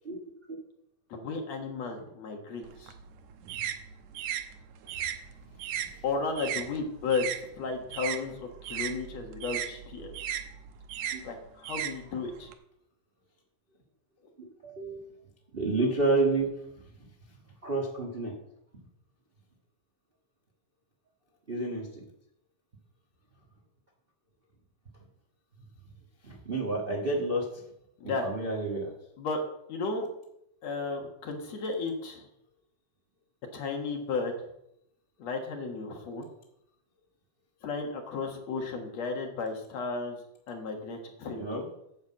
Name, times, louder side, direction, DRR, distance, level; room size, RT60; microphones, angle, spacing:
voice 1, 1.1-2.9 6.0-10.1 11.2-12.5 28.0-28.3 29.2-29.4 29.7-30.1 30.6-32.3 33.5-34.5 35.2-36.3 37.6-40.2 40.5-41.5, left 4 dB, 60° left, 2 dB, 2.5 m, -34 dB
sound 1, 2.6-7.4 7.7-12.5, right 10 dB, 75° right, 2.0 m, -36 dB
voice 2, 14.4-15.1 15.5-16.5 17.6-18.3 21.5-22.0 26.2-27.6 28.0-28.9 41.3-41.7, right 2 dB, 35° right, -1 dB, 0.9 m, -30 dB
9.7 x 6.3 x 7.4 m, 0.79 s
omnidirectional pair, 3.6 m